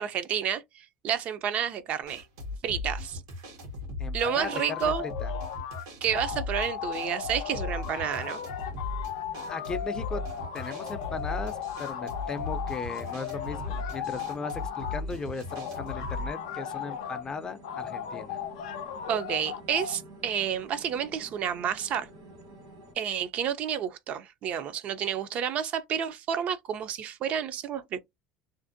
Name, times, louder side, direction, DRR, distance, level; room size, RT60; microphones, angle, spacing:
voice 1, 0.0-2.3 2.6-3.2 4.1-5.0 6.0-8.4 19.1-22.1 23.0-28.0, right 8 dB, 50° right, 0.4 m, -30 dB
sound 1, 2.1-16.3, left 2 dB, 90° right, 0.9 m, -37 dB
voice 2, 4.0-4.9 5.2-5.3 9.5-10.2 10.5-18.4, left 4 dB, 25° left, 0.4 m, -37 dB
sound 2, 4.2-5.8 6.1-15.0 15.5-17.2 17.6-20.0, left 8 dB, 90° left, 0.4 m, -36 dB
sound 3, 6.9-22.9, right 1 dB, 75° right, 1.3 m, -50 dB
2.5 x 2.0 x 2.5 m
supercardioid pair, 95°, 3 cm